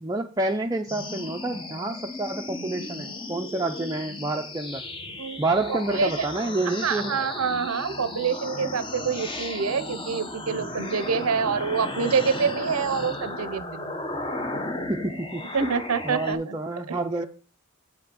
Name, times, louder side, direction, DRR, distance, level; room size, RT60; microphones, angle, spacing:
voice 1, 0.0-4.8 5.4-7.2 14.9-15.7 16.0-17.3, right 2 dB, 15° right, 3 dB, 0.5 m, -28 dB
sound 1, 0.9-16.3, left 2 dB, 25° left, 0.8 m, -35 dB
voice 2, 5.7-6.3 6.8-13.8 15.5-16.6 16.9-17.0, right 6 dB, 85° right, 13 dB, 0.6 m, -26 dB
8.2 x 5.8 x 5.1 m, 0.36 s
head